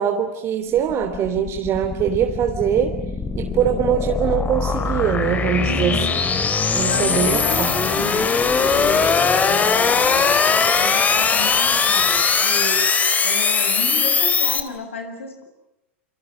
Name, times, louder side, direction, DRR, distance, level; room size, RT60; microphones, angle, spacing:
voice 1, 0.0-3.0 3.4-6.1 6.7-7.7, right 9 dB, 40° right, 5 dB, 3.3 m, -22 dB
sound 1, 0.7-14.6, left 5 dB, 20° left, 3.2 m, -20 dB
voice 2, 5.6-6.2 6.6-12.8 13.2-15.4, left 3 dB, 85° left, 6 dB, 7.1 m, -32 dB
28.5 x 26.5 x 7.6 m, 0.92 s
hypercardioid pair, 95°, 7 cm